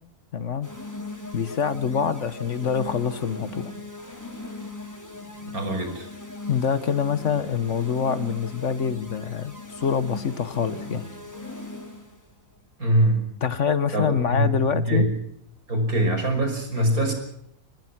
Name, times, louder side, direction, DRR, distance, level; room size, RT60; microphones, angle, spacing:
voice 1, 0.3-0.7 1.3-3.7 6.5-11.0 13.4-15.1, left 7 dB, 60° left, 14 dB, 1.4 m, -25 dB
sound 1, 0.6-12.2, left 2 dB, 10° left, 4.4 m, -39 dB
voice 2, 5.5-6.1 12.8-13.2 13.9-15.1 15.7-17.1, right 1 dB, 80° right, 5 dB, 6.3 m, -23 dB
26.0 x 20.0 x 6.0 m, 0.72 s
omnidirectional pair, 1.5 m